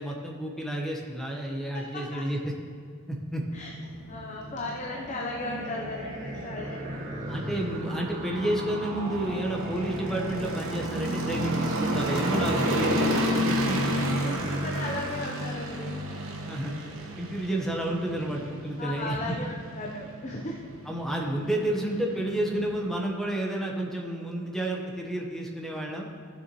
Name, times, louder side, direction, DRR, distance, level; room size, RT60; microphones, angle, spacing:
voice 1, 0.0-2.4 3.1-3.4 7.3-13.2 13.7-14.1 16.5-16.7 17.2-19.2 20.9-26.1, right 1 dB, ahead, -1 dB, 1.0 m, -30 dB
sound 1, 3.5-22.9, equal, 75° right, 1.1 m, -32 dB
voice 2, 4.1-7.0 11.1-11.2 14.2-16.0 18.8-20.6, left 2 dB, 35° left, -1 dB, 0.7 m, -36 dB
sound 2, 4.8-10.8, right 1 dB, 40° right, 1.3 m, -39 dB
14.5 x 6.8 x 3.0 m, 2.3 s
head